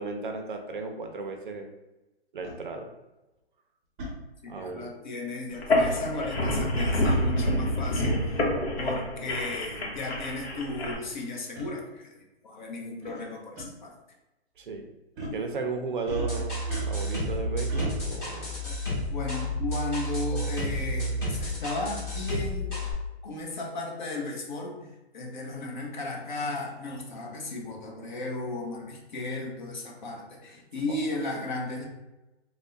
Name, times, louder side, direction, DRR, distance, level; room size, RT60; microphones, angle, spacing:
voice 1, 0.0-1.7 2.3-2.9 4.5-4.9 14.6-14.9 15.3-18.6 30.9-31.0, right 3 dB, 50° right, 4 dB, 0.5 m, -35 dB
sound 1, 2.4-2.6 4.0-4.2 5.8-6.0 7.8-8.0 8.8-8.9 9.7-9.8 10.1-10.2 11.6-11.7 13.0-13.2 13.6-13.7 15.2-15.4 16.1-17.2 17.7-17.9, equal, 15° right, 0.7 m, -37 dB
voice 2, 4.4-8.5 8.8-13.9 18.6-18.7 19.1-22.8 23.2-31.9, left 2 dB, 45° left, 0 dB, 0.7 m, -35 dB
sound 2, 5.5-10.9, left 1 dB, 65° left, 1.0 m, -27 dB
sound 3, 16.1-22.9, equal, 15° left, 0.9 m, -31 dB
3.4 x 2.1 x 3.8 m, 1.0 s
hypercardioid pair, 160°, 33 cm